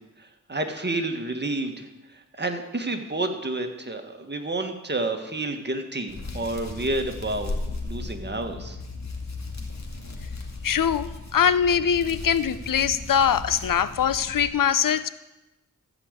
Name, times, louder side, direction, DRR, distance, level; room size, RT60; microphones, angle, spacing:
voice 1, 0.2-1.9 2.1-7.5 7.8-8.8, right 2 dB, 30° right, 5 dB, 1.7 m, -30 dB
Hands, 6.1-14.5, left 3 dB, 50° left, 2.2 m, -36 dB
voice 2, 10.6-15.1, left 8 dB, 70° left, 15 dB, 0.6 m, -22 dB
14.5 x 5.3 x 8.2 m, 1.0 s
cardioid pair, 50°, 34 cm